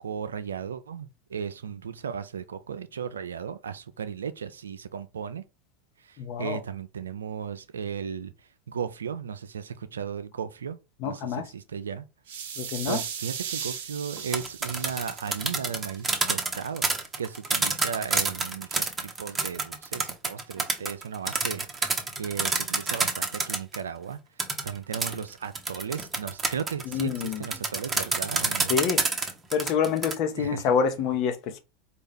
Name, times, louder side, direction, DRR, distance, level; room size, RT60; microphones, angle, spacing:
voice 1, 0.0-5.4 6.0-8.3 8.7-12.0 12.9-24.2 24.6-28.8 30.3-30.6, right 7 dB, 90° right, 0.3 m, -35 dB
voice 2, 6.2-6.6 11.0-11.5 12.6-13.0 26.8-27.5 28.7-29.0 29.5-31.6, left 7 dB, 55° left, 0.8 m, -27 dB
sound 1, 12.3-16.3, right 8 dB, 75° right, 0.8 m, -37 dB
sound 2, 14.2-23.8 24.4-30.1, right 3 dB, 20° right, 0.8 m, -28 dB
4.3 x 2.3 x 3.4 m
hypercardioid pair, 95°, 0 cm